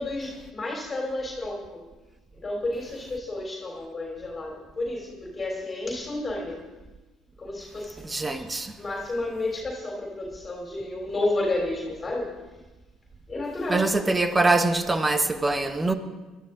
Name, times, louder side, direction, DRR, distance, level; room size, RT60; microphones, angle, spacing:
voice 1, 0.0-1.8 2.4-6.6 7.4-7.9 8.3-8.4 8.8-12.3 13.3-13.9, left 2 dB, 30° left, 3.5 m, -31 dB
voice 2, 8.0-8.7 13.7-15.9, right 2 dB, 20° right, 1.3 m, -23 dB
21.5 x 12.5 x 3.8 m
hypercardioid pair, 60°, 0 cm